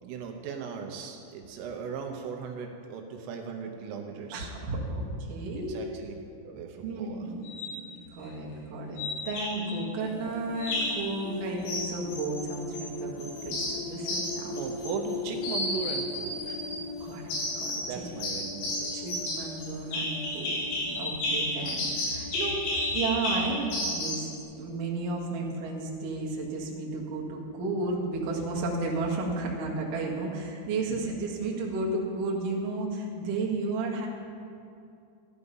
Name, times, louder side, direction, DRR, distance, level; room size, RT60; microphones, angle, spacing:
voice 1, 0.0-4.5 5.5-6.1 6.4-7.3 14.5-16.7 17.9-19.1 27.2-27.3 31.0-31.1, right 6 dB, 80° right, 3 dB, 3.5 m, -38 dB
voice 2, 4.3-5.8 6.8-14.5 17.0-17.2 17.6-18.0 18.9-22.6 22.9-24.3 24.5-34.1, right 3 dB, 55° right, -2 dB, 2.6 m, -33 dB
sound 1, 7.4-7.8 9.0-9.8 10.6-11.0 11.7-12.9 13.2-15.1 15.4-16.8 17.3-17.9 18.2-24.3, left 1 dB, 85° left, 5.9 m, -32 dB
sound 2, 10.0-26.4, left 3 dB, 60° left, 2.8 m, -41 dB
14.5 x 11.0 x 5.5 m, 2.6 s
omnidirectional pair, 5.8 m